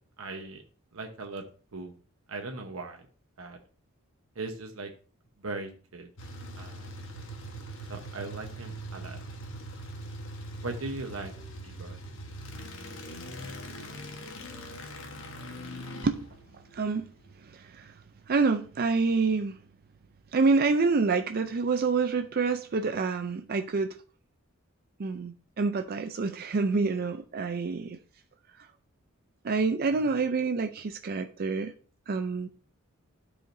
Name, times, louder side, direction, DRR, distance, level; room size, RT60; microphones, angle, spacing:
voice 1, 0.2-0.6 0.9-1.4 1.7-1.9 2.3-3.1 3.4-3.6 4.3-4.9 5.4-6.1 6.6-6.9 7.9-9.2 10.6-11.3 11.6-12.0, right 3 dB, 75° right, 1.0 m, -38 dB
sound 1, 6.2-17.3, right 1 dB, 65° left, 1.3 m, -42 dB
voice 2, 16.7-17.1 17.5-17.9 18.3-19.6 20.3-24.0 25.0-28.0 29.4-31.7 32.1-32.5, right 4 dB, 45° right, 0.5 m, -27 dB
12.0 x 5.0 x 2.6 m
head